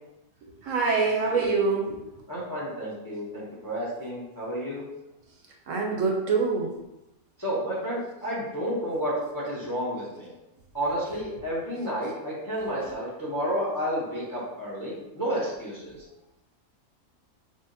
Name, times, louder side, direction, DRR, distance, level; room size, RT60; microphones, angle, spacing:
voice 1, 0.4-2.0 5.7-6.7, right 4 dB, 70° right, 0 dB, 0.9 m, -25 dB
voice 2, 2.3-4.8 7.4-10.3 10.7-16.0, equal, 20° left, -6 dB, 0.5 m, -31 dB
5.4 x 2.0 x 2.6 m, 0.94 s
omnidirectional pair, 1.5 m